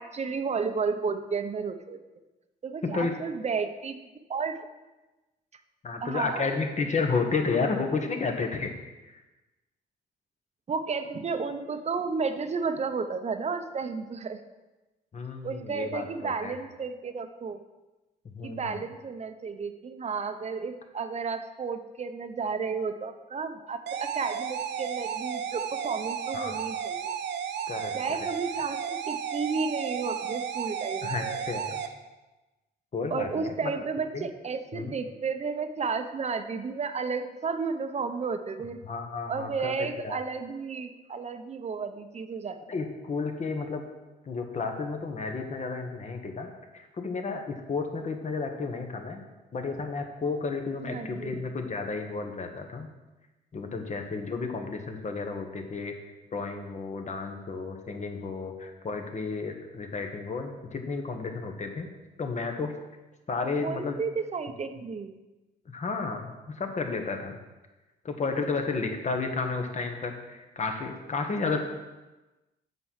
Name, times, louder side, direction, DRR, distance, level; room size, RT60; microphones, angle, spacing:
voice 1, 0.0-2.0 2.6-4.6 6.0-6.5 10.7-14.4 15.4-17.6 18.4-27.1 27.9-31.4 33.1-38.8 39.3-42.6 50.8-51.4 63.6-65.2, right 5 dB, 35° right, 8 dB, 0.8 m, -32 dB
voice 2, 5.8-8.7 9.0-9.2 15.1-16.5 18.2-18.8 26.3-26.6 27.7-28.2 31.0-31.8 32.9-33.7 34.1-34.3 34.7-34.9 38.8-40.2 42.7-43.8 44.2-49.2 49.5-52.9 53.5-55.9 56.3-61.9 62.2-62.7 63.3-63.9 65.7-67.4 68.0-71.6, left 4 dB, 40° left, 4 dB, 1.4 m, -32 dB
sound 1, 23.9-31.9, right 8 dB, 75° right, 0.7 m, -33 dB
7.8 x 6.1 x 5.7 m, 1.1 s
cardioid pair, 85°, 18 cm